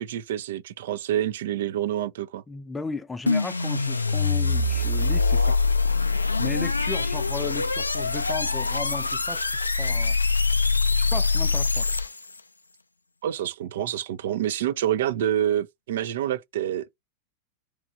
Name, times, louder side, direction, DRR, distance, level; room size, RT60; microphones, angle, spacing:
voice 1, 0.0-2.4 13.2-17.0, right 11 dB, 60° right, 0.4 m, -27 dB
voice 2, 2.5-5.6 6.4-9.5 9.8-10.2 11.0-11.9, left 3 dB, 10° left, 0.4 m, -35 dB
sound 1, 3.3-12.4, left 4 dB, 80° left, 0.3 m, -24 dB
3.1 x 2.3 x 3.8 m
figure-of-eight pair, 90°, 0 cm